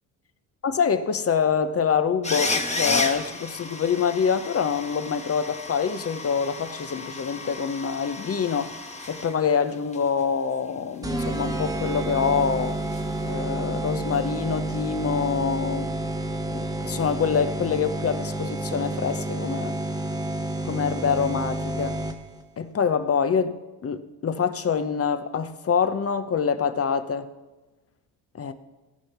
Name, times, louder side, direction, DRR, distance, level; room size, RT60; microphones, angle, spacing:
voice 1, 0.6-8.8 9.1-12.8 13.2-15.9 16.8-19.7 20.6-22.0 22.6-23.6 23.8-27.3 28.4-28.5, left 6 dB, 35° left, 11 dB, 0.9 m, -25 dB
sound 1, 2.2-9.6 9.9-10.0 12.9-13.0, left 3 dB, 15° left, 1.3 m, -32 dB
sound 2, 11.0-22.4, right 1 dB, 10° right, 1.2 m, -30 dB
16.5 x 5.7 x 5.7 m, 1.1 s
supercardioid pair, 70°, 40 cm